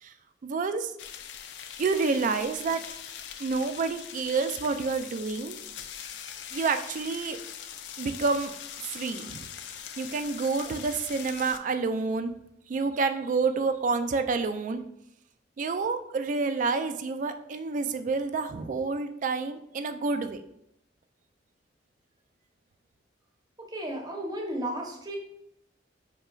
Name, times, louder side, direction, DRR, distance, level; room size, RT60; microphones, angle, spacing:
voice 1, 0.4-0.9 1.8-2.8 3.4-5.6 6.5-7.4 8.0-8.5 8.9-9.5 10.0-12.3 12.7-14.8 15.6-20.4, right 4 dB, 45° right, 9 dB, 0.3 m, -28 dB
sound 1, 1.0-11.6, left 9 dB, 70° left, 0.3 m, -42 dB
voice 2, 23.6-25.2, right 1 dB, 25° right, 1 dB, 0.7 m, -34 dB
5.5 x 2.9 x 2.3 m, 0.78 s
head